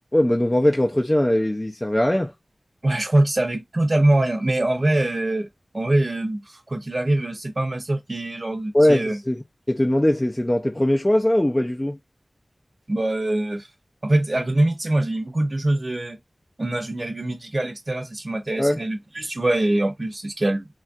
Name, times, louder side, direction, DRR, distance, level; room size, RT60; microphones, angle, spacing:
voice 1, 0.1-2.3 8.7-9.4 9.7-12.0 18.5-18.8, left 1 dB, 20° left, 0.4 m, -20 dB
voice 2, 2.8-5.5 5.7-9.2 12.9-13.7 14.0-16.2 16.6-20.7, right 1 dB, 45° right, 0.8 m, -23 dB
3.3 x 2.4 x 2.6 m
wide cardioid pair, 45°, 0 cm